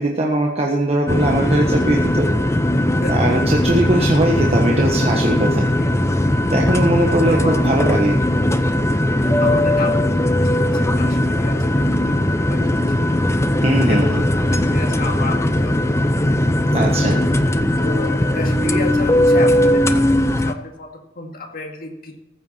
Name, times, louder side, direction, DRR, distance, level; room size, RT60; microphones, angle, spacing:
voice 1, 0.0-2.3 3.1-5.6 6.5-8.2 13.6-14.2 16.7-17.2, right 1 dB, 35° right, -1 dB, 1.4 m, -20 dB
sound 1, 1.1-20.5, left 1 dB, 15° left, 0.7 m, -18 dB
voice 2, 7.3-7.6 9.1-12.2 12.5-13.2 13.9-16.1 16.8-16.9 17.8-22.2, left 2 dB, 50° left, 3 dB, 2.1 m, -31 dB
14.5 x 8.2 x 5.6 m, 0.98 s
head